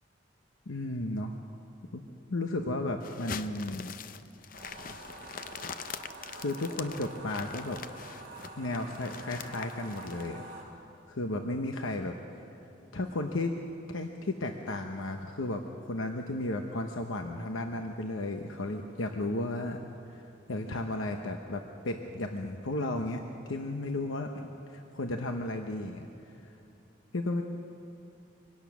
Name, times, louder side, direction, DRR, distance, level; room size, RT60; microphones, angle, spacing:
voice 1, 0.7-1.3 1.9-2.0 2.3-3.9 6.3-7.8 8.6-10.4 11.1-12.2 12.9-13.5 13.9-19.8 20.1-20.2 20.5-26.1 26.4-26.5 27.1-27.4, left 2 dB, 85° left, 4 dB, 1.0 m, -34 dB
sound 1, 3.0-10.3, left 6 dB, 45° left, 0.5 m, -43 dB
sound 2, 4.6-10.6, right 2 dB, 40° right, 4.4 m, -47 dB
24.0 x 17.5 x 6.2 m, 2.7 s
head